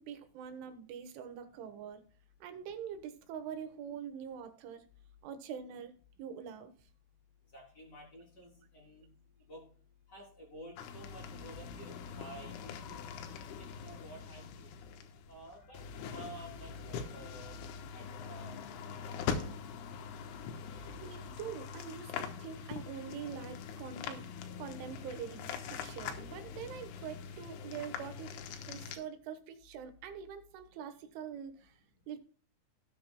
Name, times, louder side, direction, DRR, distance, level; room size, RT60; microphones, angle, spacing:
voice 1, 0.0-2.0 2.4-4.9 5.2-5.9 6.2-6.7 20.7-24.3 24.6-31.8 32.1-32.2, right 8 dB, 80° right, 7 dB, 3.6 m, -44 dB
voice 2, 7.5-9.1 9.5-9.6 10.1-13.1 13.8-14.7 15.3-15.8 16.1-17.6 17.9-18.6 19.1-19.5, right 1 dB, 25° left, -2 dB, 3.5 m, -51 dB
sound 1, 10.8-29.0, left 6 dB, 85° left, 3.5 m, -43 dB
sound 2, 11.5-20.2 21.2-29.0, left 10 dB, 65° left, 1.3 m, -57 dB
18.0 x 7.7 x 2.2 m, 0.43 s
omnidirectional pair, 5.5 m